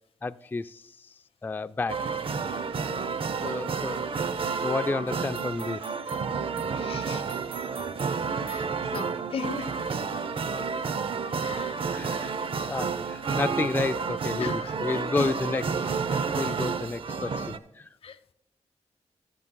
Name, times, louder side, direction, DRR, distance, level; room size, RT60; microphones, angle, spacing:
voice 1, 0.2-1.1 1.4-2.0 3.4-4.1 4.6-5.8 11.9-12.3 12.7-17.9, left 3 dB, 20° left, 0.3 m, -31 dB
sound 1, 1.9-17.6, right 5 dB, 55° right, 0.6 m, -30 dB
voice 2, 3.4-3.9 6.6-7.4 8.5-9.9 11.4-12.3 14.4-15.3 16.1-16.4 18.0-18.2, left 6 dB, 60° left, 0.7 m, -39 dB
16.5 x 7.1 x 2.2 m
supercardioid pair, 50°, 11 cm